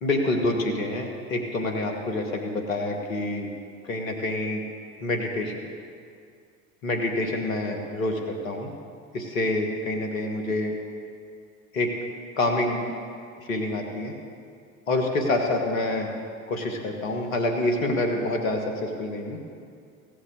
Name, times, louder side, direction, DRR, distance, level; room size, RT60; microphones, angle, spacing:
voice 1, 0.0-3.5 3.8-4.6 5.0-5.5 6.8-8.7 9.1-10.8 11.7-11.9 12.4-12.8 13.4-14.1 14.9-16.1 16.5-19.4, left 2 dB, 80° left, 2 dB, 1.6 m, -27 dB
16.0 x 5.7 x 8.2 m, 2.3 s
figure-of-eight pair, 60°, 40 cm